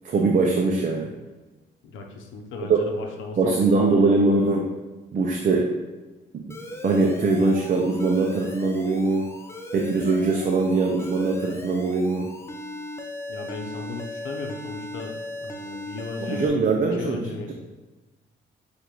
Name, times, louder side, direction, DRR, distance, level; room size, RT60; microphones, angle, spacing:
voice 1, 0.0-1.1 2.7-2.8 3.4-4.8 5.1-5.7 6.3-6.4 6.8-9.3 9.7-12.3 16.2-17.2, right 3 dB, 40° right, 0 dB, 0.5 m, -22 dB
voice 2, 1.8-3.9 13.3-16.6 16.9-17.5, left 3 dB, 80° left, 3 dB, 0.8 m, -36 dB
Alarm, 6.5-16.5, left 1 dB, 15° left, 0.5 m, -38 dB
6.7 x 2.5 x 3.0 m, 1.2 s
cardioid pair, 90°, 20 cm